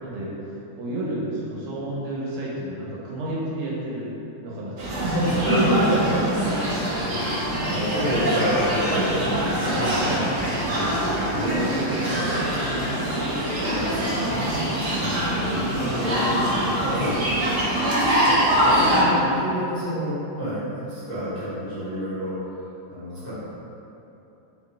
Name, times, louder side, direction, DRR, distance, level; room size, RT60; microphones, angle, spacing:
voice 1, 0.0-0.3 0.7-4.1 4.4-6.2 6.5-6.6 8.9-9.2 9.5-9.6 10.0-13.1 14.9-16.5 16.7-17.0, right 1 dB, 80° right, -6 dB, 1.7 m, -30 dB
sound 1, 4.8-19.0, equal, 65° right, 0.8 m, -24 dB
voice 2, 5.4-5.8 6.5-10.3 11.4-11.8 12.1-12.4 13.6-14.7 15.1-15.2 15.9-16.4 17.0-17.1 18.3-18.4 18.6-22.3 22.9-23.3, equal, 15° left, -15 dB, 1.0 m, -29 dB
3.5 x 3.0 x 3.6 m, 2.9 s
omnidirectional pair, 2.3 m